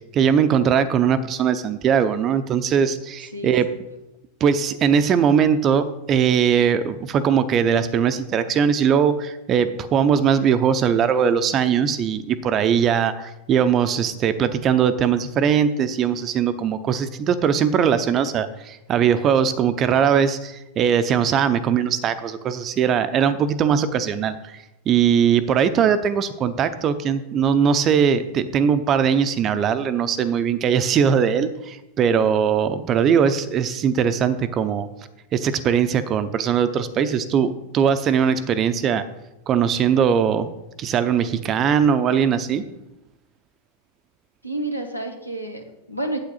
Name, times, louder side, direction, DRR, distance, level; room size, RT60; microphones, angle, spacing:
voice 1, 0.1-3.7 4.4-24.6 24.9-34.9 35.3-39.0 39.5-40.5 40.8-42.6, right 7 dB, 30° right, 12 dB, 0.6 m, -20 dB
voice 2, 3.3-3.8 44.4-46.2, right 1 dB, 90° left, 4 dB, 1.1 m, -30 dB
8.6 x 7.9 x 4.1 m, 0.94 s
figure-of-eight pair, 90°, 0 cm